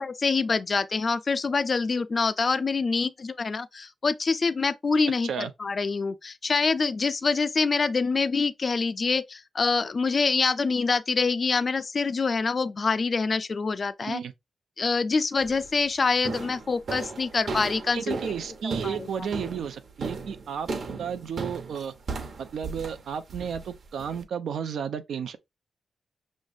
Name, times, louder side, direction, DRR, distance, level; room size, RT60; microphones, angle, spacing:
voice 1, 0.0-14.2 14.8-18.3 18.6-19.3, left 4 dB, 35° left, 0.4 m, -26 dB
voice 2, 14.0-14.3 17.9-20.7 21.0-21.9 22.4-25.4, right 7 dB, 90° right, 0.7 m, -33 dB
sound 1, 15.4-15.7 16.2-24.2, right 4 dB, 50° right, 1.0 m, -36 dB
6.3 x 3.2 x 2.5 m
wide cardioid pair, 150°, 0 cm